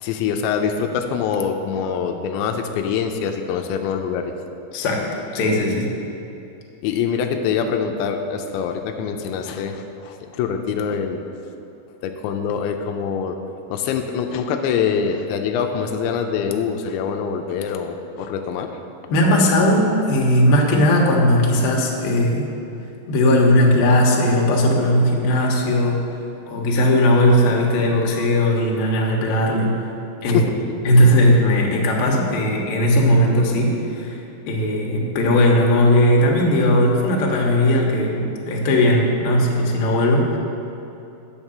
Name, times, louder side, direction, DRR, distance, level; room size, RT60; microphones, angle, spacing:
voice 1, 0.0-4.3 6.8-11.2 12.0-13.4 13.7-18.8 30.3-30.4, left 7 dB, 90° left, 5 dB, 2.9 m, -24 dB
voice 2, 4.7-5.9 19.1-22.5 23.1-26.0 26.5-29.8 30.2-30.5 30.8-40.4, left 1 dB, 70° left, -1 dB, 2.8 m, -18 dB
9.3 x 6.5 x 7.2 m, 2.8 s
omnidirectional pair, 5.0 m